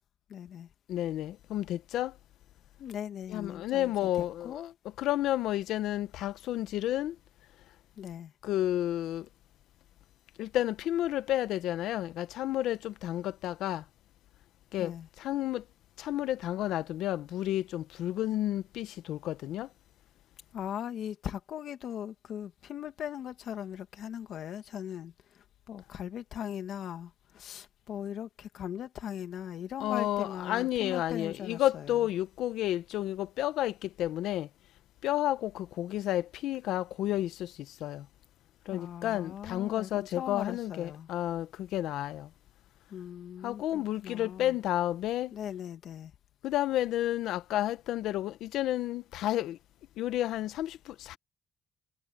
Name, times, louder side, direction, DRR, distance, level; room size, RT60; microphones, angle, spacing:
voice 1, 0.3-0.7 2.8-4.8 8.0-8.3 14.8-15.1 20.5-32.0 38.7-41.1 42.9-44.6 45.3-46.1, left 9 dB, 70° left, 2.0 m, -40 dB
voice 2, 0.9-2.1 3.3-4.6 5.0-7.1 8.4-9.3 10.4-13.8 14.7-15.6 16.0-19.7 29.8-34.5 35.0-37.5 37.8-38.0 38.7-42.3 43.4-45.3 46.4-49.6 50.0-51.2, left 13 dB, 85° left, 0.8 m, -31 dB
cardioid pair, 90°, 0 cm